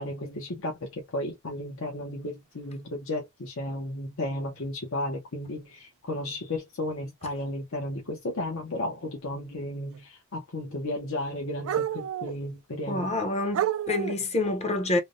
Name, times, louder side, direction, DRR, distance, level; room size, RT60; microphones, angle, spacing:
voice 1, 0.0-13.1, left 1 dB, 65° left, 0.8 m, -34 dB
sound 1, 4.6-4.7 6.1-6.2 7.2-7.4 9.9-10.0 11.6-12.4 13.1-13.2 13.5-14.3, right 10 dB, 70° right, 0.3 m, -30 dB
voice 2, 12.9-15.0, left 2 dB, 30° left, 0.6 m, -27 dB
3.3 x 2.0 x 2.5 m
head